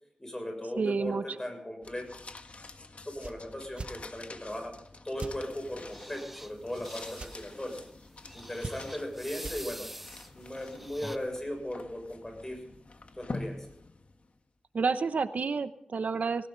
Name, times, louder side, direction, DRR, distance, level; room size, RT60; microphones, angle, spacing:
voice 1, 0.2-2.1 3.0-4.7 5.0-7.8 8.3-9.9 10.3-12.6 13.2-13.6, left 1 dB, 20° left, 3 dB, 6.8 m, -37 dB
voice 2, 0.8-1.2 14.7-16.5, right 4 dB, 90° right, 11 dB, 0.9 m, -29 dB
sound 1, 1.8-14.4, left 3 dB, 60° left, 1.5 m, -47 dB
sound 2, 3.2-3.4 3.7-3.9 5.2-5.4 7.1-7.3 8.6-9.0 9.4-9.6, right 3 dB, 50° right, 1.1 m, -39 dB
sound 3, 5.3-11.2, equal, 5° right, 1.1 m, -46 dB
19.0 x 18.0 x 4.0 m, 0.69 s
wide cardioid pair, 100°, 2 cm